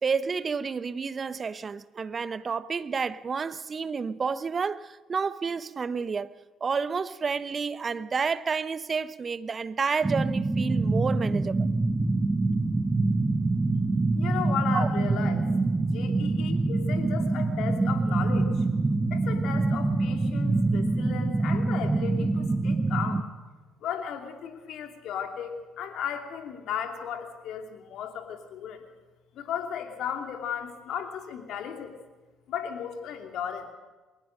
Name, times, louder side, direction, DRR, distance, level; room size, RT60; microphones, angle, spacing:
voice 1, 0.0-6.3 6.6-11.7 14.7-14.9, right 5 dB, 35° right, 0.8 m, -30 dB
sound 1, 10.0-23.2, right 3 dB, 20° right, 1.6 m, -25 dB
voice 2, 13.2-13.7 14.2-15.5 15.9-18.7 19.1-23.3 23.8-25.5 25.8-28.8 29.3-31.9 32.5-33.7, left 8 dB, 60° left, 2.9 m, -35 dB
21.5 x 19.0 x 6.5 m
hypercardioid pair, 55°, 0 cm